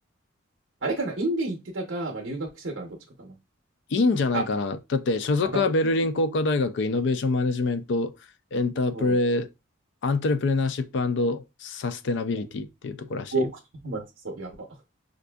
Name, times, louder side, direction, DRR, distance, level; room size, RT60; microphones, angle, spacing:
voice 1, 0.8-3.3 4.3-4.6 5.4-5.7 8.9-9.2 12.3-12.4 13.3-14.7, right 2 dB, 65° right, 0.6 m, -31 dB
voice 2, 3.9-8.1 8.5-9.5 10.0-13.3, left 3 dB, 60° left, 0.4 m, -25 dB
5.1 x 2.5 x 2.2 m
head